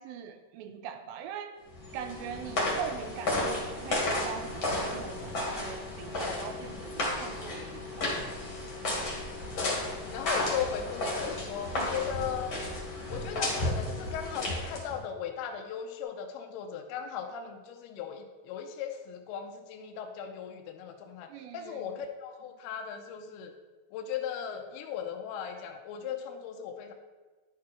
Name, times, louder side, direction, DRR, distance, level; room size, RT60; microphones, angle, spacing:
voice 1, 0.0-1.5 1.9-8.2 21.3-21.9, right 8 dB, 80° right, 7 dB, 2.2 m, -41 dB
sound 1, 1.7-15.0, left 1 dB, 35° left, 2.3 m, -33 dB
voice 2, 10.1-12.5 13.1-23.5 23.9-26.9, left 8 dB, 85° left, 4 dB, 2.5 m, -37 dB
11.5 x 6.1 x 4.4 m, 1.3 s
omnidirectional pair, 4.7 m